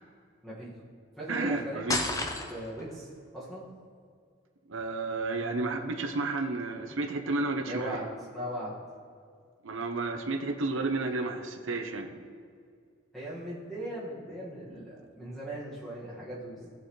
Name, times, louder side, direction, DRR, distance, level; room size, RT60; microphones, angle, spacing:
voice 1, 0.4-0.7 1.2-2.1 2.5-3.7 7.6-8.8 13.1-16.7, right 1 dB, ahead, -9 dB, 1.8 m, -39 dB
voice 2, 1.3-2.0 4.7-8.1 9.6-12.1, right 3 dB, 90° right, 5 dB, 0.8 m, -32 dB
sound 1, 1.9-2.8, left 2 dB, 15° left, 0.7 m, -30 dB
16.0 x 6.8 x 3.2 m, 2.2 s
head